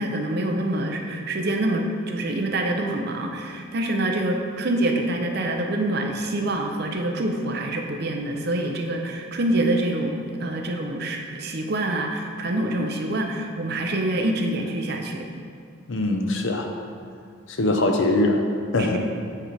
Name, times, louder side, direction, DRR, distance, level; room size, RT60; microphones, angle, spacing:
voice 1, 0.0-15.3 18.8-19.0, right 1 dB, 50° right, 3 dB, 0.6 m, -26 dB
voice 2, 15.9-16.7 17.5-18.4 18.7-19.0, left 2 dB, 65° left, 3 dB, 0.7 m, -22 dB
8.6 x 3.3 x 5.0 m, 2.4 s
head